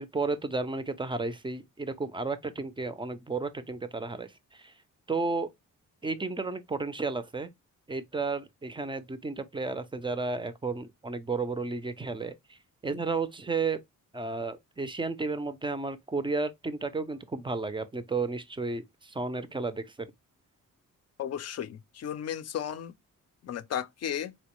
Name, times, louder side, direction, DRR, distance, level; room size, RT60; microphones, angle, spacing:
voice 1, 0.0-4.7 5.1-5.5 6.0-7.5 7.9-13.8 14.1-20.1, right 3 dB, 15° right, 0.4 m, -33 dB
voice 2, 21.2-22.9 23.4-24.3, left 9 dB, 50° left, 0.4 m, -34 dB
3.9 x 2.1 x 2.9 m
cardioid pair, 95°, 32 cm